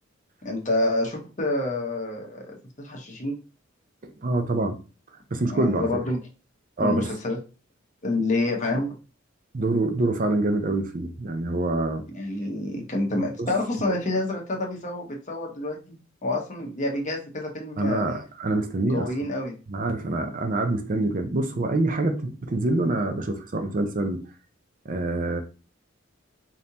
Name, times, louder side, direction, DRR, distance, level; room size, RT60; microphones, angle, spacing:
voice 1, 0.4-3.4 5.5-6.2 6.8-7.4 8.0-8.9 12.1-18.1 18.9-19.5, left 2 dB, 40° left, 1.1 m, -28 dB
voice 2, 4.2-4.8 5.3-5.9 6.8-7.1 9.5-12.0 13.4-13.5 13.9-14.0 17.8-19.1 19.7-24.2 24.8-25.4, right 2 dB, 45° right, 0.6 m, -25 dB
5.2 x 2.8 x 2.8 m
head